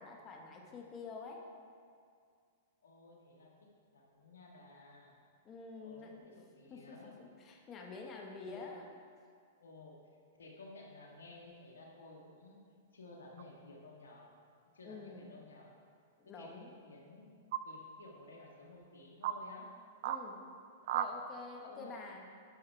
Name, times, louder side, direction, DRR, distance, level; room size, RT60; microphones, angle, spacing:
voice 1, 0.0-1.4 5.4-6.1 6.7-8.9 14.8-15.3 16.2-16.7 20.0-20.4 20.9-22.2, left 4 dB, 30° left, 1 dB, 1.2 m, -48 dB
voice 2, 2.8-5.1 5.8-7.2 8.4-8.7 9.6-10.0 10.4-12.6 12.9-14.3 14.7-15.8 16.2-19.7 20.9-21.2 21.7-22.2, left 2 dB, 90° left, -1 dB, 1.5 m, -55 dB
sound 1, 13.4-13.5 15.0-15.4 17.5-17.6 18.5-18.6 19.2-19.4 20.0-20.2 20.8-21.1, right 11 dB, 60° right, 0.4 m, -36 dB
10.5 x 5.6 x 3.4 m, 2.2 s
hypercardioid pair, 120°, 0 cm